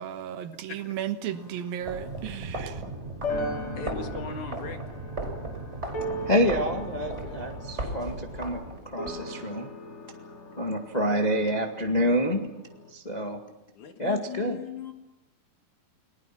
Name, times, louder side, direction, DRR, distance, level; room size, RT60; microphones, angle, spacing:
voice 1, 0.0-2.8, right 10 dB, 80° right, 9 dB, 3.1 m, -34 dB
voice 2, 0.7-1.0 3.8-4.8 13.7-14.9, left 7 dB, 60° left, 5 dB, 3.1 m, -39 dB
sound 1, 1.3-12.9, left 1 dB, 40° left, 3.4 m, -39 dB
sound 2, 1.8-9.1, right 2 dB, 15° right, 5.3 m, -36 dB
voice 3, 6.2-9.7 10.6-12.5 12.9-13.4 14.0-14.6, equal, 20° left, 2 dB, 1.0 m, -27 dB
30.0 x 21.0 x 6.0 m, 0.96 s
omnidirectional pair, 4.2 m